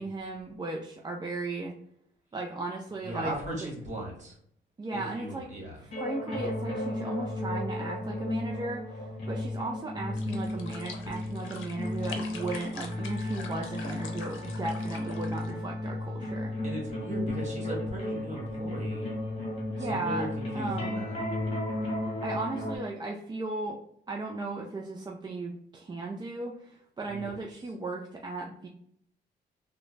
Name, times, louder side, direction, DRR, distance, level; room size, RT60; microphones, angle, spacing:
voice 1, 0.0-1.7 2.3-3.3 4.8-5.5 5.8-16.5 19.7-20.3 20.5-21.1 22.2-23.8 24.1-28.7, right 2 dB, 20° right, -1 dB, 0.4 m, -36 dB
voice 2, 3.0-4.4 4.9-5.8 10.3-10.6 16.6-19.2 19.8-21.2 27.0-27.3, right 1 dB, 35° right, -2 dB, 1.5 m, -38 dB
sound 1, 5.9-22.8, left 1 dB, 30° left, 1.1 m, -34 dB
sound 2, 10.1-15.5, left 5 dB, 75° left, 0.7 m, -45 dB
Wind instrument woodwind instrument, 12.9-17.5, left 1 dB, 85° right, 0.7 m, -51 dB
3.6 x 2.2 x 3.1 m, 0.69 s
cardioid pair, 90°, 20 cm